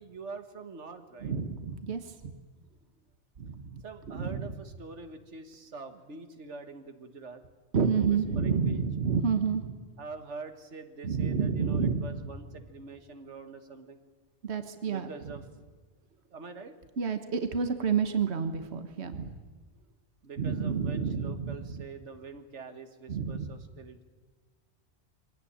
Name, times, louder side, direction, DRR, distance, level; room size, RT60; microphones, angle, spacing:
voice 1, 0.0-1.3 3.8-7.4 8.0-8.8 10.0-14.0 14.9-15.4 16.3-16.8 20.2-24.0, right 4 dB, 90° right, 7 dB, 1.8 m, -45 dB
voice 2, 1.2-2.3 3.4-4.5 7.7-9.7 11.0-12.3 14.4-15.3 17.0-19.4 20.4-21.8 23.1-23.5, right 6 dB, 70° right, 8 dB, 1.4 m, -30 dB
23.0 x 17.5 x 9.9 m, 1.4 s
omnidirectional pair, 1.2 m